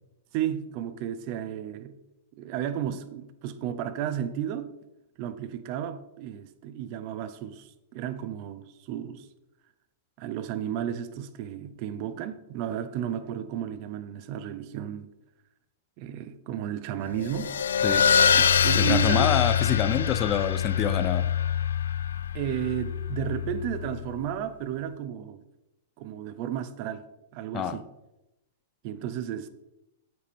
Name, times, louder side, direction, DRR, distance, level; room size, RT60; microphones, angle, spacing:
voice 1, 0.3-1.9 2.4-4.7 5.2-9.3 10.2-15.1 16.0-17.5 18.3-19.4 22.3-25.4 26.0-27.0 27.3-27.8 28.8-29.5, right 10 dB, 45° right, 0.8 m, -33 dB
sound 1, 17.2-24.2, left 8 dB, 90° left, 0.4 m, -25 dB
voice 2, 18.7-21.3 27.5-27.8, left 9 dB, 30° left, 0.6 m, -27 dB
9.1 x 8.0 x 3.5 m
hypercardioid pair, 140°, 0 cm